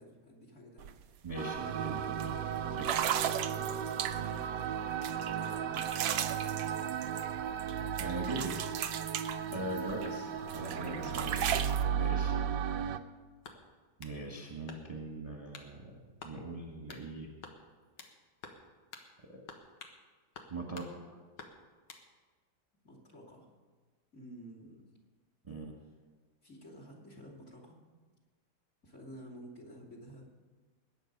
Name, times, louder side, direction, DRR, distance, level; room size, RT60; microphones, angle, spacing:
voice 1, 0.0-2.2 5.0-6.1 9.4-9.8 11.9-12.1 22.8-23.5 24.1-24.8 26.4-27.7 28.8-30.3, equal, 35° left, -1 dB, 2.9 m, -51 dB
sound 1, 0.8-0.9 1.3-1.6 2.2-2.3 2.8-4.4 5.0-7.7 8.0-10.1 10.5-11.8, right 10 dB, 90° right, 1.4 m, -36 dB
voice 2, 1.2-2.1 2.8-3.0 8.0-8.8 9.5-11.6 12.0-13.0 14.0-15.9 16.2-17.3 19.3-19.4 20.5-21.2 25.4-25.7, right 2 dB, 20° right, 1 dB, 1.3 m, -41 dB
sound 2, 1.4-13.0, right 8 dB, 70° right, 1.2 m, -35 dB
sound 3, 13.4-14.2 14.7-15.1 15.5-15.7 16.2-16.4 16.9-17.1 17.4-18.2 18.4-18.6 18.9-19.1 19.5-20.0 20.3-20.9 21.4-22.1, left 4 dB, 90° left, 2.1 m, -50 dB
20.5 x 9.2 x 5.3 m, 1.4 s
omnidirectional pair, 2.2 m